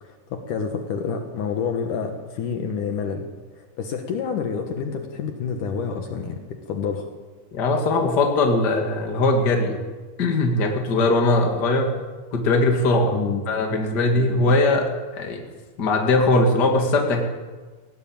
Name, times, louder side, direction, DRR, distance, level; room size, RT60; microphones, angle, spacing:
voice 1, 0.0-3.3 3.6-7.1 11.6-12.0 13.1-13.4 14.1-14.4, left 6 dB, 65° left, 5 dB, 2.7 m, -28 dB
voice 2, 7.5-9.8 10.2-11.9 12.3-14.9 15.1-15.4 15.8-17.2, left 2 dB, 30° left, 3 dB, 2.4 m, -20 dB
19.5 x 17.0 x 8.8 m, 1.4 s
omnidirectional pair, 4.3 m